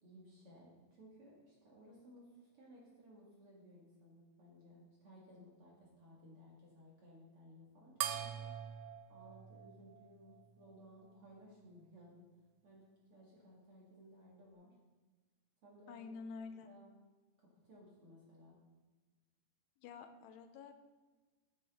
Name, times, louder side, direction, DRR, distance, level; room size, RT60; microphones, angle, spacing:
voice 1, 0.0-8.5 9.1-12.2 12.6-14.7 15.6-16.1 16.6-16.9 17.5-18.6, equal, 45° right, -5 dB, 2.2 m, -60 dB
sound 1, 8.0-10.8, right 11 dB, 85° right, 2.6 m, -44 dB
voice 2, 15.9-16.7 19.8-20.7, left 5 dB, 85° left, 8 dB, 2.8 m, -49 dB
11.0 x 9.2 x 3.6 m, 1.3 s
omnidirectional pair, 4.6 m